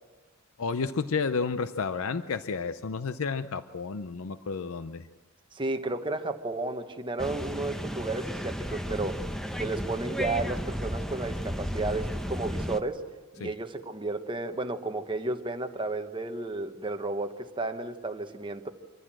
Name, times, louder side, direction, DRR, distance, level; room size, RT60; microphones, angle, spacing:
voice 1, 0.6-5.1 13.4-13.5, left 5 dB, 75° left, 12 dB, 0.6 m, -31 dB
voice 2, 5.5-9.2 9.6-13.0 13.4-18.7, right 2 dB, 25° right, 6 dB, 1.1 m, -33 dB
sound 1, 7.2-12.8, equal, ahead, 0.8 m, -33 dB
25.0 x 14.5 x 7.6 m, 1.3 s
head